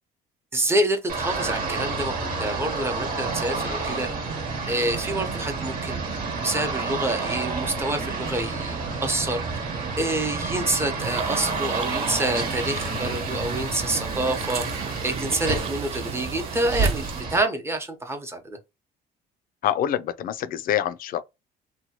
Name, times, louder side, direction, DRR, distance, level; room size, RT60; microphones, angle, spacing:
voice 1, 0.5-4.1 4.7-6.0 6.4-8.7 9.0-9.6 10.0-18.6, right 1 dB, 15° right, 0.8 m, -27 dB
sound 1, 1.1-17.4, right 4 dB, 60° right, 1.2 m, -30 dB
sound 2, 3.2-11.9, right 5 dB, 85° right, 0.7 m, -38 dB
sound 3, 11.0-17.2, right 8 dB, 35° right, 0.4 m, -38 dB
voice 2, 19.6-21.2, left 11 dB, 60° left, 0.4 m, -26 dB
3.0 x 2.2 x 2.9 m
cardioid pair, 110°, 17 cm